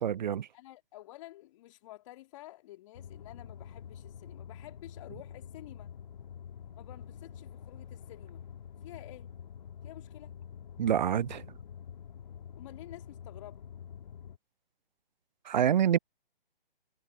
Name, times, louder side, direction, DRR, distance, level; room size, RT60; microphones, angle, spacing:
voice 1, 0.0-0.5 10.8-11.5 15.5-16.0, right 9 dB, 50° right, 0.6 m, -27 dB
voice 2, 0.5-5.9 6.8-8.4 8.8-9.3 9.8-10.4 12.6-13.6, left 16 dB, 30° left, 2.0 m, -50 dB
sound 1, 2.9-14.4, left 8 dB, 50° left, 2.0 m, -47 dB
figure-of-eight pair, 140°, 29 cm